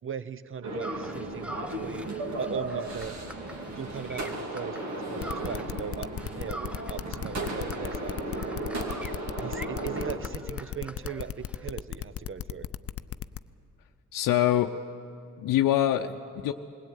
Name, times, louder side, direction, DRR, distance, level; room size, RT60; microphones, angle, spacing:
voice 1, 0.0-2.1 2.4-3.1 3.7-8.2 9.4-12.7, right 7 dB, 40° right, 14 dB, 0.9 m, -39 dB
sound 1, 0.6-10.2, right 2 dB, 55° right, 2.7 m, -35 dB
sound 2, 0.8-5.9 6.2-11.7, right 1 dB, 5° right, 0.9 m, -45 dB
sound 3, 5.2-13.4, left 10 dB, 45° left, 0.6 m, -35 dB
voice 2, 14.1-14.7 15.4-16.5, left 12 dB, 80° left, 4 dB, 0.7 m, -24 dB
20.5 x 16.5 x 9.2 m, 2.5 s
cardioid pair, 75°, 33 cm